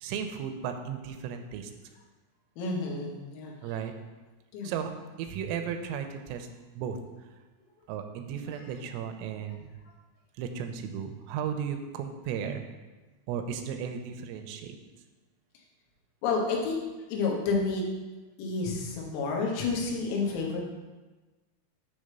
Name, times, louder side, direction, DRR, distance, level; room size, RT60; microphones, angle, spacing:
voice 1, 0.0-1.7 3.6-3.9 4.6-4.9 5.2-6.5 6.8-7.0 7.9-9.7 10.4-12.6 13.3-14.8, right 7 dB, 85° right, 6 dB, 3.2 m, -35 dB
voice 2, 2.6-3.6 4.5-4.7 8.5-8.7 16.2-16.8 17.1-17.8 18.4-20.6, left 4 dB, 90° left, -1 dB, 3.9 m, -30 dB
9.2 x 3.3 x 6.6 m, 1.2 s
omnidirectional pair, 5.9 m